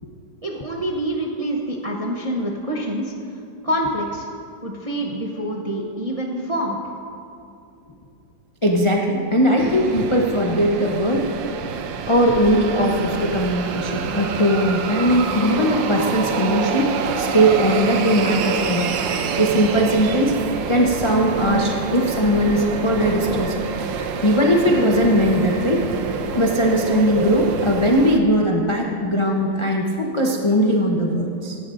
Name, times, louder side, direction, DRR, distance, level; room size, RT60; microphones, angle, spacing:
voice 1, 0.4-3.1 3.6-4.3 4.6-6.8, right 1 dB, 40° right, -1 dB, 0.5 m, -26 dB
voice 2, 8.6-11.3 12.1-18.9 19.4-20.4 20.7-23.5 24.2-25.9 26.3-31.6, equal, 40° left, -1 dB, 0.4 m, -19 dB
sound 1, 9.6-28.2, right 6 dB, 85° right, 1.4 m, -27 dB
17.0 x 11.5 x 2.6 m, 2.5 s
omnidirectional pair, 2.0 m